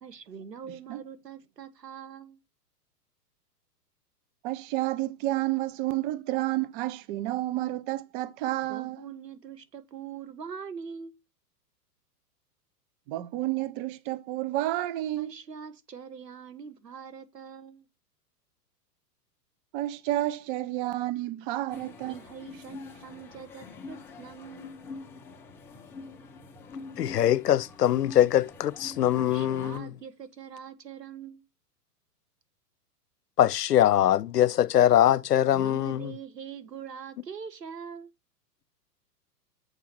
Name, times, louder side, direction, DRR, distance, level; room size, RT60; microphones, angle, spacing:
voice 1, 0.0-2.4 8.7-11.2 15.2-17.9 22.1-24.7 29.2-31.5 35.5-38.1, right 7 dB, 80° right, 1.6 m, -43 dB
voice 2, 4.4-9.1 13.1-15.3 19.7-22.2, right 16 dB, 35° right, 0.7 m, -30 dB
sound 1, 21.7-29.8, left 4 dB, 5° left, 0.4 m, -45 dB
voice 3, 27.0-29.9 33.4-36.1, left 11 dB, 75° left, 0.7 m, -22 dB
7.8 x 4.6 x 6.0 m
figure-of-eight pair, 110°, 48 cm